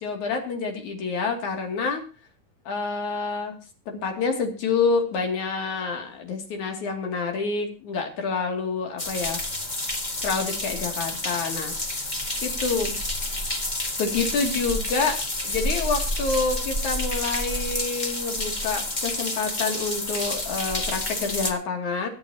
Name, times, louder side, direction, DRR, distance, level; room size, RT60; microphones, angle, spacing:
voice 1, 0.0-2.0 2.7-3.5 3.9-9.4 10.2-12.1 12.4-13.0 14.0-22.1, left 4 dB, 55° left, 3 dB, 3.8 m, -28 dB
sound 1, 9.0-21.5, left 1 dB, 85° left, 0.4 m, -29 dB
24.0 x 8.8 x 2.9 m, 0.35 s
omnidirectional pair, 4.3 m